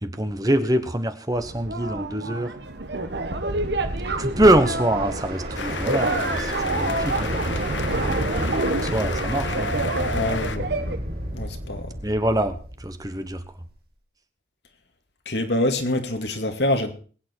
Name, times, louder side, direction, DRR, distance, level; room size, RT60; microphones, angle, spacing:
voice 1, 0.0-2.6 4.2-7.3 8.8-10.2 12.0-13.5, right 1 dB, 20° right, 1.1 m, -24 dB
sound 1, 1.3-11.0, right 2 dB, 70° right, 1.5 m, -28 dB
sound 2, 3.5-13.5, right 1 dB, 55° right, 4.6 m, -32 dB
sound 3, 5.6-10.6, left 5 dB, 90° left, 1.1 m, -33 dB
voice 2, 10.1-10.7 11.3-12.0 15.3-16.9, left 1 dB, 70° left, 2.2 m, -25 dB
22.0 x 9.1 x 4.6 m
head